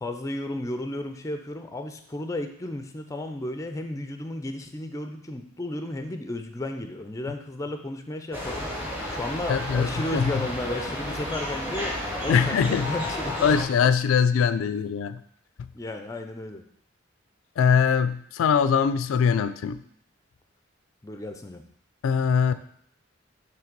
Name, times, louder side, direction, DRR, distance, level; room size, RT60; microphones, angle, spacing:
voice 1, 0.0-13.6 15.7-16.6 21.0-21.6, left 1 dB, 15° left, 6 dB, 0.4 m, -33 dB
sound 1, 8.3-13.6, left 1 dB, 10° right, 1.1 m, -32 dB
voice 2, 9.5-10.3 12.3-12.9 13.4-15.2 17.6-19.8 22.0-22.5, left 6 dB, 80° left, 13 dB, 0.3 m, -22 dB
5.8 x 3.2 x 5.2 m, 0.65 s
head